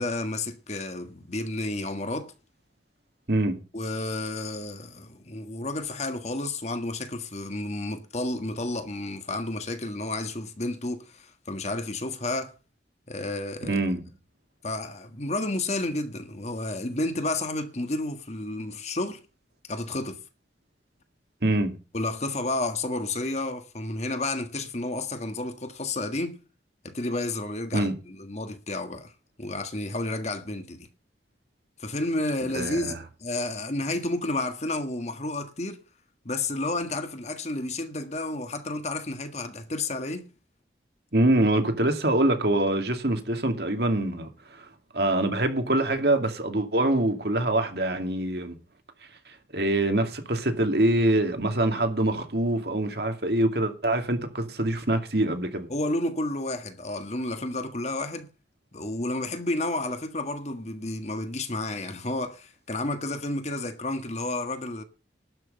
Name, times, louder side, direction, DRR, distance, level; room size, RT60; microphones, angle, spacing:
voice 1, 0.0-2.3 3.7-12.5 13.1-13.8 14.6-19.2 19.7-20.2 21.9-26.4 26.8-29.1 29.4-30.9 31.8-35.8 36.2-40.2 55.7-58.3 58.7-64.8, left 2 dB, 40° left, 1.6 m, -31 dB
voice 2, 13.7-14.0 21.4-21.7 27.7-27.9 32.5-33.0 41.1-44.7 44.9-48.5 49.3-55.7, right 1 dB, 65° right, 2.4 m, -24 dB
12.0 x 6.3 x 8.8 m
head